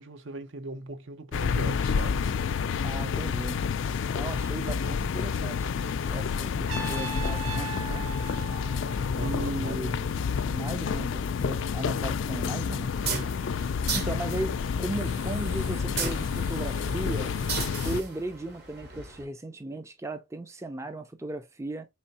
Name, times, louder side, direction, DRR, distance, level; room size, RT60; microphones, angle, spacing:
voice 1, 0.0-2.3 9.1-10.3, right 3 dB, 70° right, 0.7 m, -39 dB
sound 1, 1.3-18.0, left 6 dB, 70° left, 0.3 m, -29 dB
voice 2, 2.8-3.6 4.1-5.7 6.0-8.0 9.2-10.0 10.5-12.9 13.9-17.3 17.8-21.9, right 2 dB, 15° right, 0.4 m, -36 dB
Trumpet, 6.7-9.7, right 6 dB, 90° right, 1.4 m, -39 dB
sound 2, 12.9-19.2, right 4 dB, 50° right, 1.2 m, -37 dB
4.4 x 3.2 x 2.7 m
head